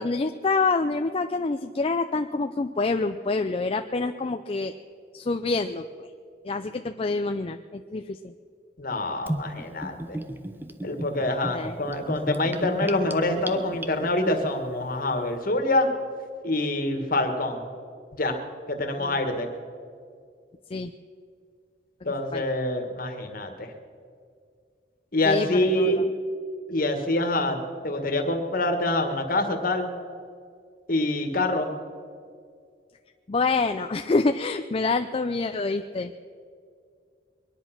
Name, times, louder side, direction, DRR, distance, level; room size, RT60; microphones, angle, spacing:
voice 1, 0.0-4.7 5.1-6.1 6.4-8.3 11.5-11.7 19.0-19.2 20.7-20.9 22.3-22.4 25.2-26.1 33.3-36.1, left 3 dB, 30° left, 7 dB, 0.4 m, -27 dB
voice 2, 8.8-10.2 10.8-15.9 16.4-17.7 18.1-18.4 18.7-19.5 22.0-23.7 25.1-26.0 26.7-27.6 27.8-29.9 30.9-31.7, left 1 dB, 50° left, 5 dB, 1.7 m, -26 dB
Gurgling / Bathtub (filling or washing), 9.3-14.3, right 1 dB, 10° right, 0.7 m, -34 dB
22.5 x 10.5 x 6.0 m, 2.2 s
head